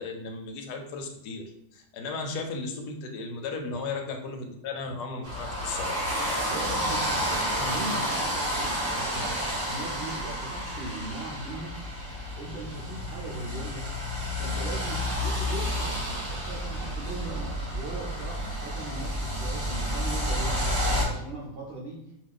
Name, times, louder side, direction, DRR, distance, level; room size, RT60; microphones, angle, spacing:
voice 1, 0.0-1.4 1.7-6.0, left 4 dB, 85° left, 4 dB, 1.1 m, -35 dB
sound 1, 5.2-21.0, equal, 10° left, 0.8 m, -30 dB
voice 2, 6.4-11.7 12.4-14.0 14.4-22.1, right 2 dB, 60° right, -5 dB, 0.6 m, -39 dB
2.6 x 2.3 x 3.6 m, 0.80 s
omnidirectional pair, 1.7 m